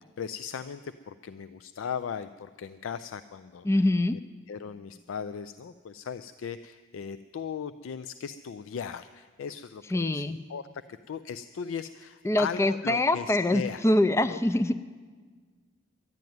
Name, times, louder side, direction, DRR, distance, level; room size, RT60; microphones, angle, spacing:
voice 1, 0.2-3.7 4.1-4.2 4.5-13.8 14.2-14.4, left 7 dB, 85° left, 12 dB, 0.4 m, -38 dB
voice 2, 3.6-4.2 9.9-10.4 12.2-14.8, left 1 dB, 15° left, 13 dB, 0.3 m, -24 dB
12.0 x 10.5 x 9.3 m, 1.5 s
head